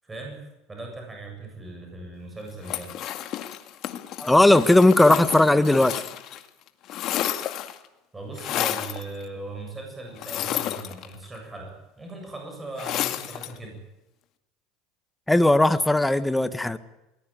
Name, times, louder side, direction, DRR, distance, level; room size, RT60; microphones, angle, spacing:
voice 1, 0.0-0.4 0.7-2.9 8.1-13.8, right 2 dB, 15° right, 2 dB, 7.7 m, -39 dB
sound 1, 2.6-6.4 6.7-7.9 8.4-9.0 10.2-11.4 12.8-13.6, left 12 dB, 50° left, 2.1 m, -31 dB
voice 2, 4.2-5.9 15.3-16.8, left 1 dB, 5° left, 12 dB, 1.3 m, -18 dB
21.5 x 19.5 x 9.3 m, 0.96 s
supercardioid pair, 135°, 0 cm